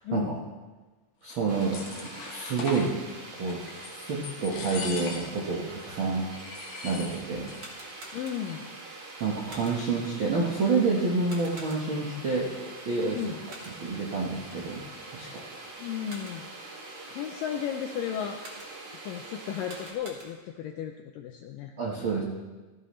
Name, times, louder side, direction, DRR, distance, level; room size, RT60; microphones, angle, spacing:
voice 1, 0.0-0.5 8.1-8.7 13.1-13.5 15.8-16.8 17.1-18.4 18.9-21.7, left 9 dB, 85° left, 5 dB, 1.9 m, -35 dB
voice 2, 1.2-2.9 3.4-6.2 6.8-7.5 9.2-12.5 12.8-13.2 13.8-14.8 15.1-15.4 21.8-22.2, right 4 dB, 85° right, -3 dB, 1.1 m, -28 dB
sound 1, 1.3-2.9 3.5-4.0 4.2-5.5 5.8-5.9 6.3-7.7 7.9-8.0 8.3-8.8, left 4 dB, 55° left, 2.3 m, -40 dB
sound 2, 1.5-19.9, right 2 dB, 50° right, 3.2 m, -44 dB
sound 3, 7.4-8.7 9.5-10.0 11.2-12.1 13.5-14.0 15.8-16.6 18.4-19.0 19.5-20.6, right 1 dB, 35° right, 2.0 m, -48 dB
15.0 x 14.5 x 3.2 m, 1.3 s
omnidirectional pair, 4.6 m